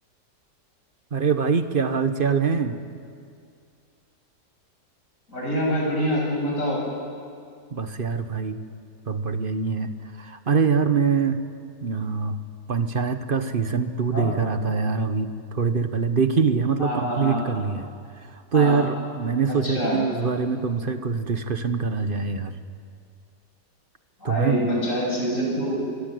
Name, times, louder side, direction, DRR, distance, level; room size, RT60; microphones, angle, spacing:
voice 1, 1.1-2.8 7.7-8.6 9.1-9.9 10.2-11.4 11.8-12.4 12.7-17.9 18.5-22.5 24.2-24.6, right 5 dB, 35° right, 9 dB, 1.2 m, -24 dB
voice 2, 5.3-6.8 13.9-14.3 16.8-17.4 18.5-18.8 19.5-20.0 24.2-25.8, equal, 50° left, -3 dB, 8.5 m, -26 dB
26.0 x 25.0 x 7.9 m, 2.3 s
omnidirectional pair, 1.8 m